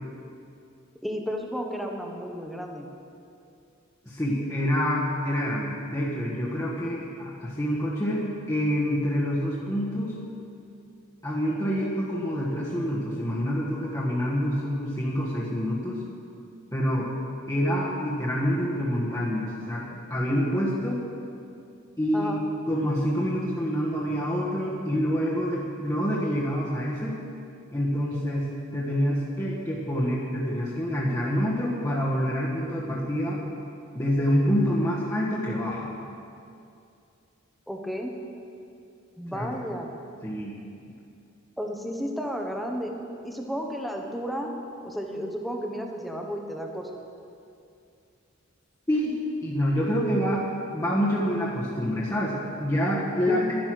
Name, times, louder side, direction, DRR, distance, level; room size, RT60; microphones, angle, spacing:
voice 1, 1.0-2.9 22.1-22.4 37.7-38.1 39.2-39.9 41.6-42.9 43.2-44.5 44.8-46.9 53.3-53.5, equal, ahead, 1 dB, 1.1 m, -32 dB
voice 2, 4.0-10.2 11.2-16.0 16.7-17.1 17.5-21.0 22.0-22.3 22.7-27.2 27.7-33.4 33.9-35.9 39.3-39.5 40.2-40.6 48.9-49.1 49.4-50.4 50.7-53.5, equal, 15° left, -7 dB, 1.4 m, -27 dB
11.0 x 10.5 x 6.3 m, 2.5 s
head